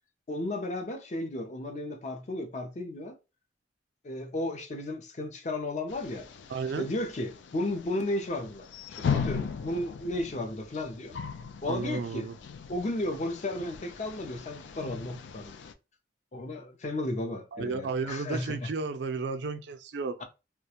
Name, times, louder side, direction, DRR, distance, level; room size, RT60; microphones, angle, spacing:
voice 1, 0.3-3.2 4.0-6.3 6.8-8.7 9.0-11.2 11.6-12.3 12.7-15.6 16.3-18.7, left 1 dB, 40° left, 0.5 m, -34 dB
sound 1, 5.9-15.7, left 6 dB, 90° left, 0.3 m, -38 dB
voice 2, 6.5-6.9 11.7-12.4 17.5-20.2, right 4 dB, 70° right, 0.4 m, -33 dB
2.4 x 2.1 x 2.8 m
head